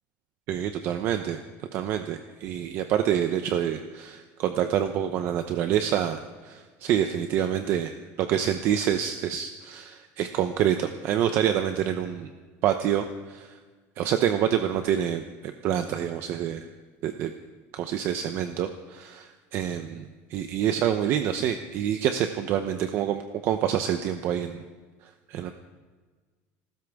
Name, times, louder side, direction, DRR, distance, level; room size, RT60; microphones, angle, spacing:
voice 1, 0.5-1.4 1.7-12.3 12.6-13.6 14.0-16.7 17.0-17.3 17.7-20.0 20.3-24.6 25.3-25.5, right 10 dB, 40° right, 7 dB, 0.7 m, -27 dB
30.0 x 13.0 x 3.6 m, 1.4 s
cardioid pair, 180°, 6 cm